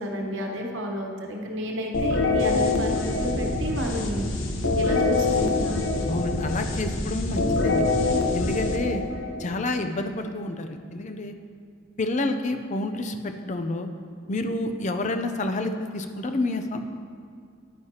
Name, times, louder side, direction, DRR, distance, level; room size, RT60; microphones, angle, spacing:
voice 1, 0.0-4.2 4.8-5.8, equal, 65° right, 1 dB, 1.1 m, -31 dB
sound 1, 1.9-9.6, left 3 dB, 70° left, 0.8 m, -25 dB
voice 2, 6.1-7.9 8.3-9.0 9.4-11.3 12.0-13.9 14.3-16.9, left 2 dB, 35° left, 6 dB, 0.5 m, -29 dB
10.0 x 9.5 x 2.9 m, 2.2 s
head